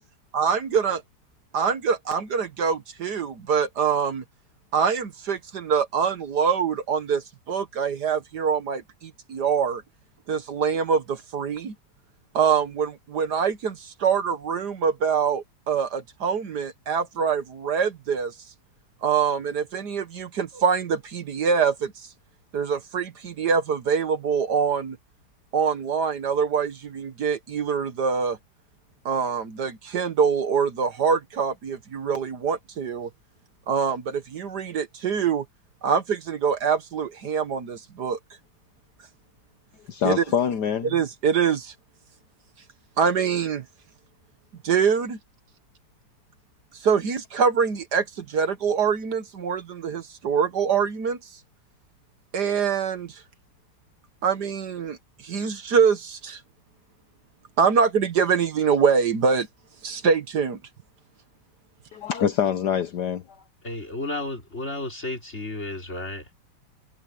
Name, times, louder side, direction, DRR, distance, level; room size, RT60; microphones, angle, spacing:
voice 1, 0.3-1.0 1.5-4.2 4.7-9.8 10.3-11.7 12.3-18.3 19.0-21.9 22.5-25.0 25.5-28.4 29.0-33.1 33.7-35.4 35.8-38.2 40.0-40.2 40.8-41.7 43.0-43.6 44.6-45.2 46.8-51.2 52.3-53.2 54.2-55.0 55.2-56.4 57.6-59.5 59.8-60.6, right 6 dB, 60° right, 1.7 m, -24 dB
voice 2, 39.9-41.0 61.9-63.2, left 8 dB, 65° left, 1.5 m, -25 dB
voice 3, 63.6-66.3, left 2 dB, 35° left, 4.7 m, -32 dB
omnidirectional pair, 2.1 m